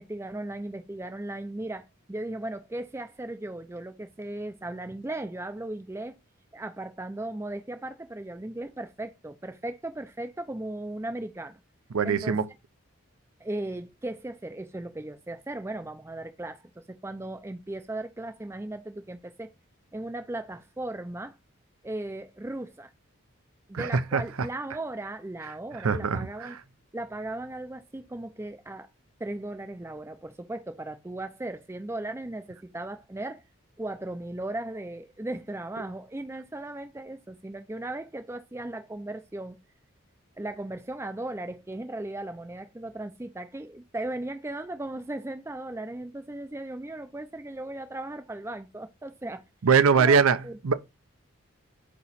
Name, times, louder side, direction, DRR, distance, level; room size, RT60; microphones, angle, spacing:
voice 1, 0.0-6.2 6.5-11.6 12.0-12.4 13.4-19.5 19.9-21.4 21.8-22.9 23.7-26.6 26.9-28.9 29.2-33.4 33.8-39.6 40.4-49.4 50.0-50.5, right 1 dB, 10° right, 0.4 m, -37 dB
voice 2, 11.9-12.5 23.7-24.5 25.5-26.6 49.6-50.7, right 5 dB, 80° right, 0.6 m, -23 dB
8.3 x 2.9 x 4.1 m
head